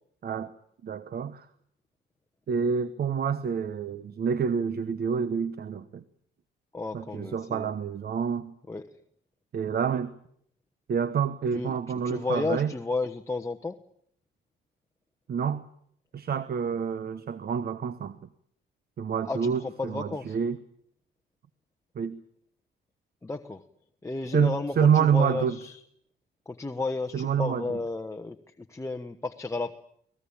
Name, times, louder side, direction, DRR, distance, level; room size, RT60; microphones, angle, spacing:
voice 1, 0.2-0.5 0.8-1.5 2.5-6.0 6.9-8.5 9.5-10.1 10.9-12.7 15.3-15.7 16.1-18.2 19.0-20.6 21.9-22.2 24.3-25.6 27.1-27.8, right 7 dB, 50° right, 1.1 m, -27 dB
voice 2, 6.7-7.7 8.7-8.8 11.5-13.8 19.3-20.4 23.2-23.6 24.0-25.8 26.5-28.4 28.7-29.8, left 3 dB, 15° left, 1.2 m, -32 dB
24.5 x 19.0 x 8.7 m
cardioid pair, 90°, 20 cm